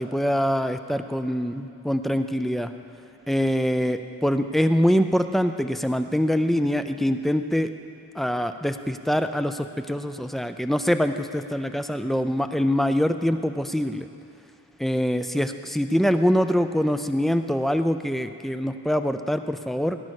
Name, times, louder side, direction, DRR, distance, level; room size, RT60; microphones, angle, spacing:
voice 1, 0.0-2.7 3.3-7.7 8.2-14.1 14.8-20.0, equal, ahead, 9 dB, 0.4 m, -24 dB
18.0 x 11.0 x 6.5 m, 2.7 s
head